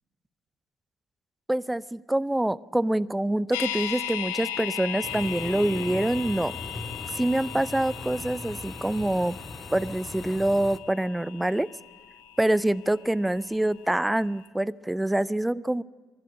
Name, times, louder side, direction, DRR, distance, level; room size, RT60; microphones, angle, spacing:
voice 1, 1.5-6.5 7.1-9.4 9.7-11.7 12.4-15.8, right 1 dB, 10° right, 20 dB, 0.5 m, -26 dB
sound 1, 3.5-13.6 13.9-14.0, left 10 dB, 75° left, 0.9 m, -37 dB
sound 2, 5.0-10.8, left 3 dB, 25° left, 1.0 m, -39 dB
25.0 x 12.0 x 9.5 m, 1.4 s
figure-of-eight pair, 55°, 0 cm